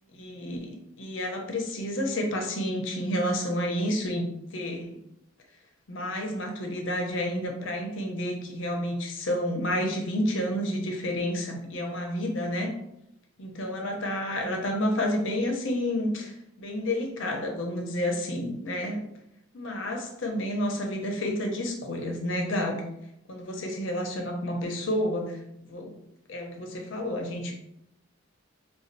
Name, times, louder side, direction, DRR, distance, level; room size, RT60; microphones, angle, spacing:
voice 1, 0.2-5.0 5.9-12.7 13.4-16.3 16.6-19.0 19.5-22.8 23.3-25.3 25.6-25.9 26.3-27.6, left 1 dB, 65° left, 2 dB, 0.6 m, -30 dB
4.2 x 2.3 x 2.6 m, 0.79 s
head